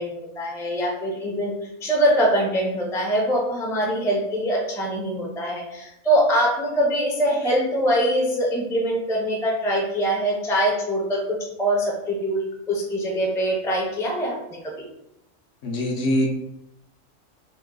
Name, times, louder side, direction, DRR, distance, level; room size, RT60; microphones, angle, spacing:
voice 1, 0.0-1.5 1.8-14.7, equal, 5° left, -2 dB, 0.5 m, -23 dB
voice 2, 15.6-16.3, left 1 dB, 60° left, 0 dB, 0.9 m, -23 dB
3.1 x 3.0 x 3.8 m, 0.84 s
omnidirectional pair, 1.3 m